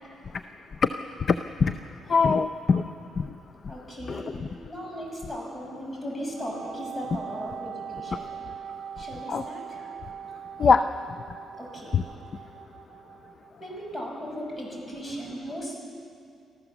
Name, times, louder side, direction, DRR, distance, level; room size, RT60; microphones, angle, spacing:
voice 1, 1.3-1.7 2.1-2.9 3.2-3.4 4.1-4.2 9.3-9.4 10.6-10.9 11.9-12.0, left 5 dB, 45° left, 10 dB, 0.6 m, -22 dB
voice 2, 3.7-8.4 9.0-10.0 11.5-12.4 13.6-15.7, equal, 25° left, 0 dB, 6.4 m, -37 dB
Wind instrument woodwind instrument, 6.3-14.0, right 8 dB, 65° right, 1.3 m, -41 dB
26.0 x 14.5 x 7.1 m, 2.5 s
cardioid pair, 90°, 0 cm